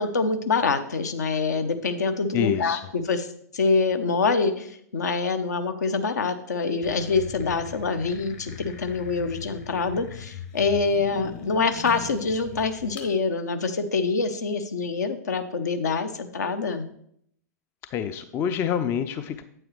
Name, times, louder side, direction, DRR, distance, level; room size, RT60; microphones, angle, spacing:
voice 1, 0.0-3.3 3.5-16.8, left 4 dB, 65° left, 9 dB, 0.8 m, -25 dB
voice 2, 2.3-2.8 17.9-19.4, left 8 dB, 25° left, 11 dB, 0.4 m, -27 dB
sound 1, 6.8-13.1, left 7 dB, 45° left, 1.3 m, -40 dB
8.7 x 7.6 x 3.2 m, 0.68 s
figure-of-eight pair, 105°, 10 cm